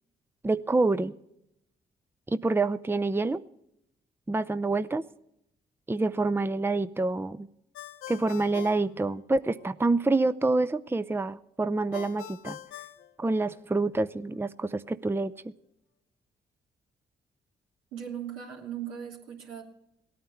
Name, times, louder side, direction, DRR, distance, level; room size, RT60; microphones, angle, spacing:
voice 1, 0.4-1.1 2.3-3.4 4.3-5.0 5.9-7.5 8.1-12.6 13.2-15.3, right 3 dB, 10° right, 13 dB, 0.6 m, -27 dB
Ringtone, 7.7-9.7 11.9-13.9, left 13 dB, 75° left, 0.7 m, -44 dB
voice 2, 17.9-19.6, right 9 dB, 85° right, 0 dB, 3.0 m, -38 dB
17.5 x 9.4 x 8.3 m, 0.78 s
hypercardioid pair, 50°, 21 cm